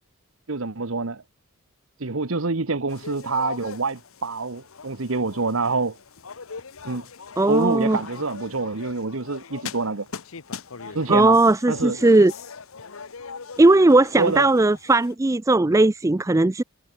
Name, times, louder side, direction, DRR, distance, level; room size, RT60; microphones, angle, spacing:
voice 1, 0.5-1.2 2.0-6.0 6.8-7.1 7.5-10.1 10.9-11.4 11.7-12.0 14.1-14.5, right 3 dB, 75° right, 1.2 m, -26 dB
sound 1, 2.9-15.2, left 5 dB, 80° left, 1.1 m, -40 dB
voice 2, 7.4-8.0 11.1-12.3 13.6-16.6, right 2 dB, 15° right, 0.4 m, -17 dB
head